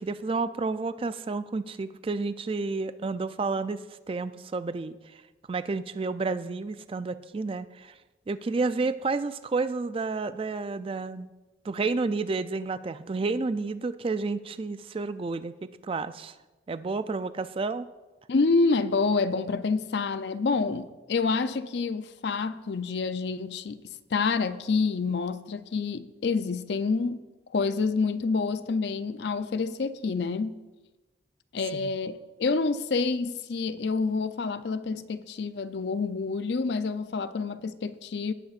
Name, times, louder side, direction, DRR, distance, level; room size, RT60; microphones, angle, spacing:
voice 1, 0.0-5.2 5.5-7.9 8.3-11.3 11.6-16.4 16.7-17.9 31.8-31.9, right 3 dB, 30° right, 0.3 m, -30 dB
voice 2, 18.3-23.8 24.1-27.3 27.5-30.6 31.5-38.3, left 4 dB, 60° left, 0.5 m, -28 dB
18.0 x 8.7 x 2.5 m
head